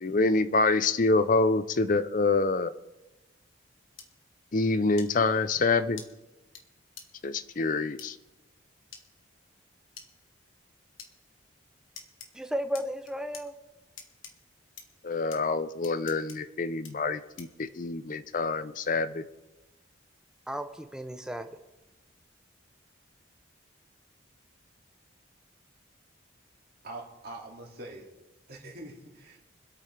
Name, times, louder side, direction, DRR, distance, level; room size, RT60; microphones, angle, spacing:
voice 1, 0.0-2.7 4.5-6.0 7.2-8.2 15.0-19.2, left 3 dB, 40° left, 12 dB, 0.5 m, -26 dB
sound 1, 4.0-4.1 5.0-5.1 6.0-6.1 6.6-6.7 7.0-7.1 8.0-8.1 8.9-9.0 10.0-10.1 11.0-11.1 12.0-12.3 12.7-13.4 14.0-14.3 14.8-14.9 15.3-15.4 15.8-16.4 16.8-16.9 17.4-17.6, left 7 dB, 80° left, 1.4 m, -45 dB
voice 2, 12.3-13.5 20.5-21.5, equal, 5° right, 7 dB, 0.6 m, -34 dB
voice 3, 26.8-28.1 28.5-29.4, right 2 dB, 50° right, -2 dB, 2.3 m, -43 dB
25.5 x 8.5 x 3.3 m, 1.0 s
head